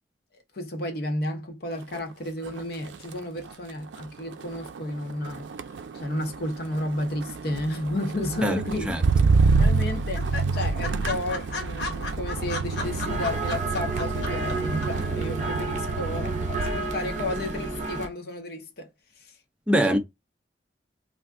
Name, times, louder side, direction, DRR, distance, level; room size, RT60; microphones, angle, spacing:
voice 1, 0.5-5.5 5.9-8.9 9.6-10.3 10.5-18.9 19.2-19.3 19.9-20.0, left 1 dB, 55° left, 0.7 m, -32 dB
Motor vehicle (road), 1.8-2.1 2.5-16.9 17.3-17.7, right 4 dB, 80° right, 0.4 m, -28 dB
voice 2, 8.4-9.0 19.7-20.0, equal, 5° right, 0.4 m, -23 dB
sound 1, 8.5-9.1 9.4-9.5 9.8-9.9 10.1-14.5 14.8-14.9, left 3 dB, 80° left, 0.9 m, -34 dB
sound 2, 12.7-18.1, right 3 dB, 40° right, 0.7 m, -31 dB
2.5 x 2.3 x 3.4 m
head